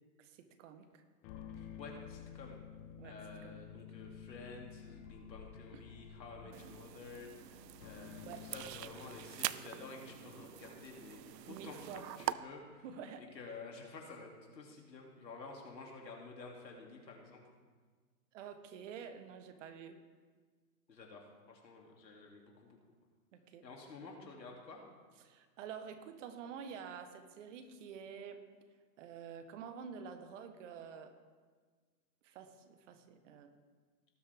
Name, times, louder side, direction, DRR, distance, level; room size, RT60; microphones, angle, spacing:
voice 1, 0.2-1.0 3.0-3.6 5.7-5.8 6.4-6.6 8.3-8.5 11.4-12.1 12.8-13.3 18.3-20.0 23.3-23.7 25.2-28.4 29.0-31.2 32.2-33.5, right 7 dB, 50° right, 9 dB, 1.3 m, -49 dB
sound 1, 1.2-12.6, left 8 dB, 25° left, 0.6 m, -53 dB
voice 2, 1.6-2.6 3.0-11.8 12.2-12.8 13.3-17.4 20.9-22.8 23.6-24.8, left 3 dB, 85° left, 0 dB, 3.0 m, -51 dB
sound 2, 6.5-12.3, right 12 dB, 75° right, 0.6 m, -44 dB
18.0 x 7.9 x 3.6 m, 1.5 s
hypercardioid pair, 125°, 49 cm